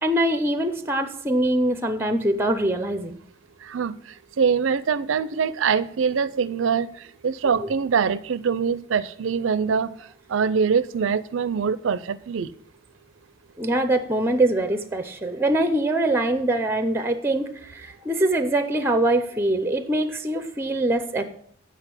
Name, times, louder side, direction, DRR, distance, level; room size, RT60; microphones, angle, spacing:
voice 1, 0.0-3.2 7.6-7.7 13.6-21.2, right 1 dB, 10° right, 0.6 m, -23 dB
voice 2, 4.4-6.9 7.2-9.9 10.3-12.5, right 6 dB, 70° right, 0.4 m, -23 dB
8.1 x 6.2 x 6.9 m
head